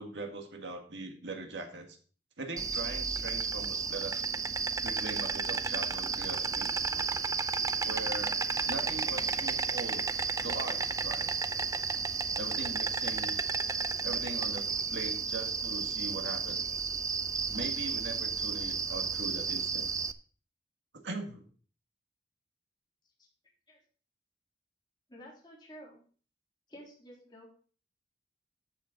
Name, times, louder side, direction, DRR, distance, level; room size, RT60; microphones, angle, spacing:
voice 1, 0.0-2.0 2.4-4.4 4.8-6.7 7.8-8.4 8.7-10.1 10.4-11.3 12.4-13.4 14.0-16.6 17.5-19.9 21.0-21.5, right 2 dB, 80° right, 4 dB, 1.9 m, -41 dB
Insect, 2.6-20.1, right 5 dB, 20° right, 0.4 m, -32 dB
voice 2, 25.1-26.0 26.7-27.5, equal, 25° left, -3 dB, 3.4 m, -51 dB
13.0 x 6.9 x 3.8 m, 0.43 s
head